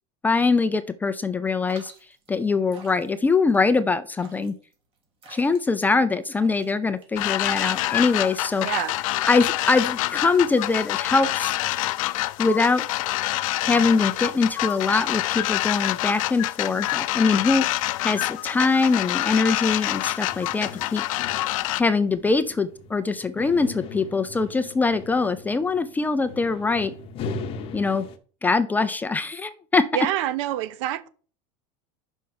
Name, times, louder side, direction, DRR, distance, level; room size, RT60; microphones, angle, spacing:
voice 1, 0.2-1.9 2.3-4.5 5.3-8.7 9.3-11.5 12.4-12.9 13.6-17.7 18.0-21.0 21.8-26.9 27.7-28.0 28.4-29.8, left 4 dB, 10° left, 0.4 m, -23 dB
sound 1, 1.7-7.6, right 3 dB, 35° right, 2.7 m, -50 dB
sound 2, 7.2-21.8, left 17 dB, 85° left, 0.5 m, -26 dB
voice 2, 8.6-9.0 29.9-31.1, right 12 dB, 65° right, 0.8 m, -26 dB
sound 3, 20.3-28.2, left 4 dB, 35° left, 0.9 m, -39 dB
5.7 x 5.3 x 6.5 m
supercardioid pair, 155°, 17 cm